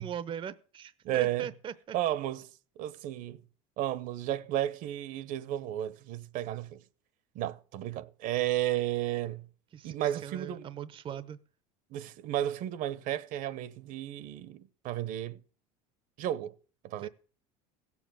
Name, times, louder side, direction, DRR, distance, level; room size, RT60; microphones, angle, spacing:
voice 1, 0.0-2.0 9.7-11.4 17.0-17.1, right 8 dB, 35° right, 0.7 m, -40 dB
voice 2, 1.0-1.5 1.9-2.5 2.8-3.4 3.8-6.8 7.3-9.4 9.8-10.7 11.1-11.2 11.9-15.4 16.2-16.5 16.8-17.1, right 13 dB, 55° right, 1.0 m, -33 dB
16.0 x 7.4 x 7.5 m
supercardioid pair, 110°, 16 cm